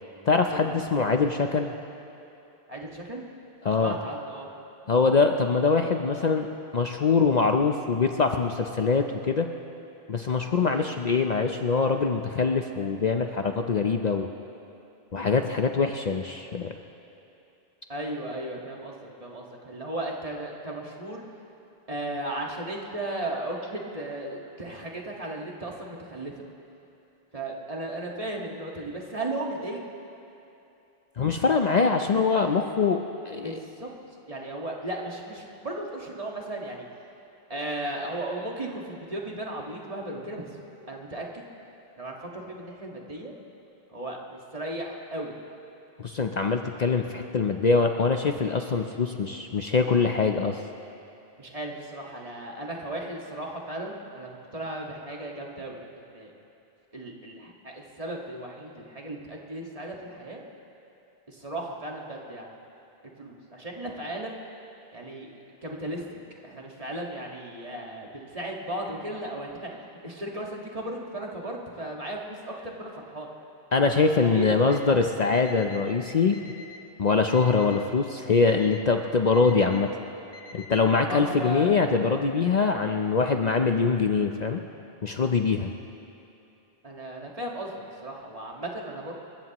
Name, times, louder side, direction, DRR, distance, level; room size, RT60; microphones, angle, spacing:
voice 1, 0.3-1.7 3.6-3.9 4.9-6.5 6.7-9.5 10.1-14.3 15.1-16.7 31.2-33.6 46.0-50.6 73.7-76.4 77.0-79.9 80.5-84.6 85.0-85.7, left 4 dB, 50° left, 5 dB, 0.7 m, -23 dB
voice 2, 2.7-3.2 3.7-4.5 10.7-10.9 17.9-21.2 21.9-26.4 27.3-29.8 33.4-33.9 34.3-36.9 37.5-40.6 40.9-41.5 42.0-43.3 43.9-45.3 51.4-56.3 56.9-60.4 61.3-62.5 63.2-64.4 64.9-65.3 65.6-73.3 74.2-75.0 81.1-82.0 86.8-89.1, right 1 dB, 35° right, -1 dB, 1.8 m, -36 dB
Alarm, 74.6-74.8 75.3-75.8 76.3-76.8 77.3-77.8 78.3-78.8 79.3-79.8 80.3-80.8, left 4 dB, 65° left, 1.4 m, -46 dB
28.5 x 15.0 x 3.0 m, 2.9 s
omnidirectional pair, 1.0 m